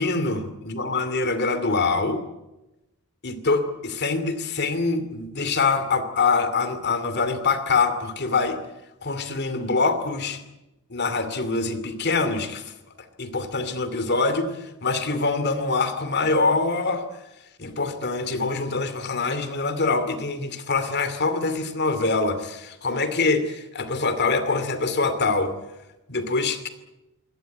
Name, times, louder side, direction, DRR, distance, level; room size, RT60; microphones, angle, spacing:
voice 1, 0.0-2.2 3.2-8.6 9.0-10.4 10.9-12.7 13.2-17.0 17.6-25.5 26.1-26.7, left 3 dB, 50° left, 11 dB, 2.7 m, -24 dB
23.0 x 18.0 x 9.3 m, 0.97 s
head